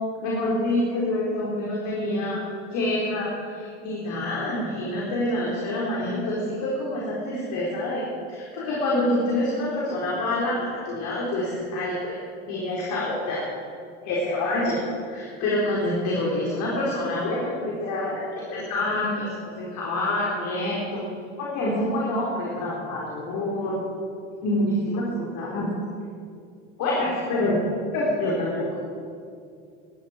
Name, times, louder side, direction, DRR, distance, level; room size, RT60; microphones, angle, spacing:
voice 1, 0.2-2.4 2.7-8.0 8.3-10.6 10.8-12.2 12.5-13.4 14.0-19.3 19.6-21.0 21.4-23.8 24.4-25.7 26.8-27.6 27.9-28.8, left 1 dB, 55° left, -5 dB, 4.6 m, -26 dB
21.0 x 13.5 x 4.6 m, 2.4 s
hypercardioid pair, 80°, 35 cm